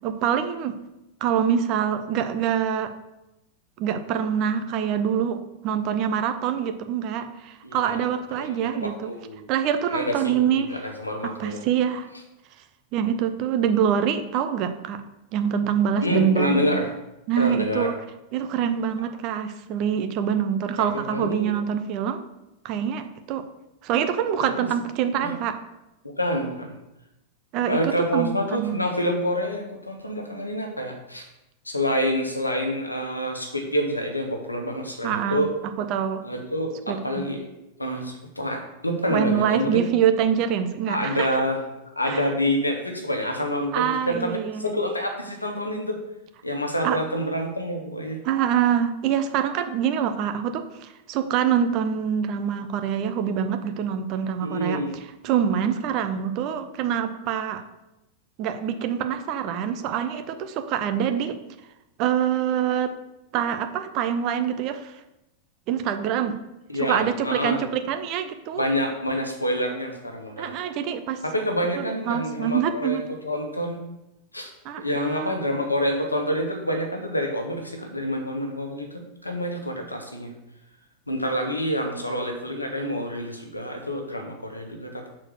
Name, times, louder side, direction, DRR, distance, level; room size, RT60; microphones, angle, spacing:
voice 1, 0.0-0.8 1.2-2.9 3.8-9.1 9.5-10.8 11.2-12.1 12.9-15.0 15.3-16.7 17.3-17.9 18.3-22.2 22.6-23.4 23.8-25.5 27.5-28.8 35.0-35.4 35.9-36.2 36.9-37.3 39.1-41.3 42.1-42.2 43.7-44.8 46.8-47.0 48.2-54.8 55.2-57.6 58.4-61.4 62.0-62.9 63.3-64.9 65.7-66.3 66.8-68.6 70.4-71.2 71.8-73.0 74.6-75.3, right 8 dB, 40° right, 8 dB, 0.7 m, -25 dB
voice 2, 7.6-8.0 8.4-9.4 9.9-10.4 10.7-11.6 16.0-16.9 17.4-17.9 20.8-21.5 24.4-24.7 25.2-25.3 26.0-26.8 27.7-31.3 31.6-35.5 36.2-37.5 37.8-39.8 40.9-41.6 42.0-46.0 46.4-48.2 54.4-55.0 66.7-67.6 68.6-70.6 71.2-73.8 74.3-80.3 81.1-85.1, equal, 85° left, 3 dB, 1.2 m, -27 dB
6.3 x 4.3 x 6.4 m, 0.92 s
figure-of-eight pair, 90°, 0 cm